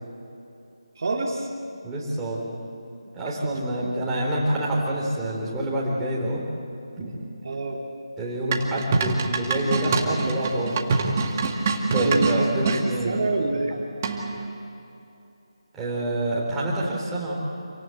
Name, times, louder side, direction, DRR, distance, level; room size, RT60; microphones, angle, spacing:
voice 1, 1.0-1.5 3.3-3.4 3.9-4.1 7.4-7.8 11.8-13.7, right 3 dB, 45° right, 0 dB, 2.3 m, -27 dB
voice 2, 1.8-2.6 3.1-6.4 7.0-7.2 8.2-10.9 11.9-13.3 15.7-17.4, right 1 dB, 5° right, -6 dB, 3.9 m, -27 dB
sound 1, 8.5-12.8 14.0-14.4, right 4 dB, 30° right, 2.0 m, -25 dB
28.0 x 18.5 x 8.0 m, 2.8 s
figure-of-eight pair, 165°, 3 cm